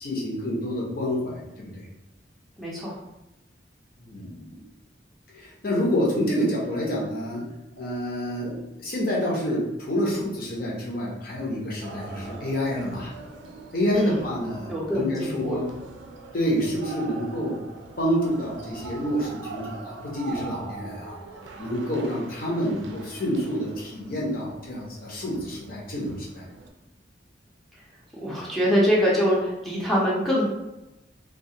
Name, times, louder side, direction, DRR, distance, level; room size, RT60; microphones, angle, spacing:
voice 1, 0.0-1.8 4.0-4.6 5.3-7.4 7.8-13.1 13.7-15.7 16.3-17.6 18.0-21.2 21.6-26.4, equal, 50° left, -4 dB, 0.8 m, -28 dB
voice 2, 2.6-2.9 13.9-14.2 14.7-15.6 28.2-30.4, equal, ahead, -7 dB, 0.5 m, -24 dB
sound 1, 11.8-26.7, right 3 dB, 80° right, 0.3 m, -42 dB
2.3 x 2.2 x 2.7 m, 0.93 s
head